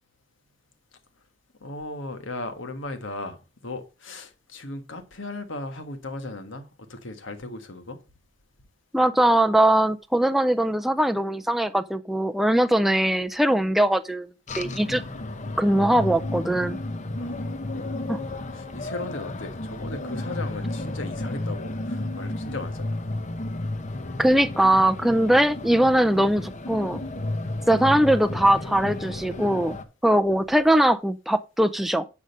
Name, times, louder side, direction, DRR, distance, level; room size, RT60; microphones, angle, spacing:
voice 1, 1.6-3.4 3.6-8.0 17.1-18.0 18.3-23.0 27.6-27.7, left 2 dB, 75° left, 1.5 m, -37 dB
voice 2, 8.9-14.3 14.6-15.0 15.6-16.8 18.1-18.2 24.2-27.0 27.7-32.1, right 1 dB, ahead, 0.4 m, -21 dB
sound 1, 14.5-29.8, left 2 dB, 40° left, 0.9 m, -32 dB
8.4 x 5.0 x 5.4 m
head